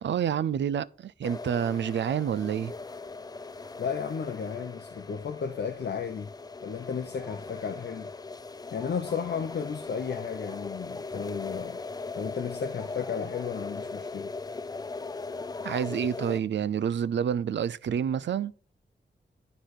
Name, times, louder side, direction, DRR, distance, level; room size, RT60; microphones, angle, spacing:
voice 1, 0.0-2.7 15.6-18.5, right 8 dB, 85° right, 0.4 m, -28 dB
sound 1, 1.2-16.4, left 3 dB, 20° left, 0.4 m, -39 dB
voice 2, 3.8-6.3 6.6-8.1 8.7-11.8 12.1-14.3, left 6 dB, 65° left, 0.8 m, -34 dB
11.5 x 4.0 x 6.4 m
wide cardioid pair, 155°, 18 cm